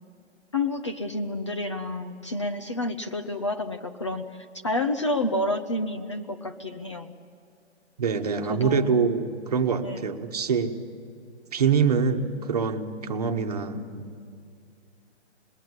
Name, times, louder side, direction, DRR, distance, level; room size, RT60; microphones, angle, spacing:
voice 1, 0.5-7.1 8.5-8.9 9.7-10.1, left 2 dB, 25° left, 6 dB, 0.6 m, -29 dB
voice 2, 8.0-10.7 11.5-14.1, right 6 dB, 35° right, 6 dB, 1.4 m, -25 dB
26.0 x 20.5 x 9.6 m, 2.4 s
hypercardioid pair, 175°, 34 cm